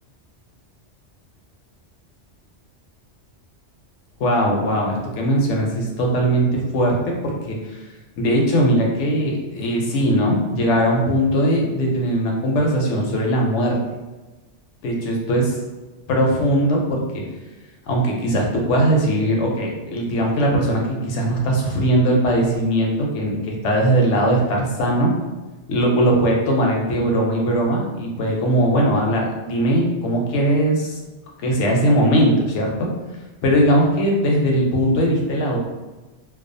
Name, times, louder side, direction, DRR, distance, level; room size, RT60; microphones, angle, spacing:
voice 1, 4.2-7.8 8.2-13.8 14.8-15.5 16.1-17.2 17.9-25.1 25.7-31.0 31.4-32.9 33.4-35.6, right 1 dB, 80° left, 0 dB, 0.9 m, -20 dB
2.3 x 2.3 x 2.5 m, 1.2 s
omnidirectional pair, 1.2 m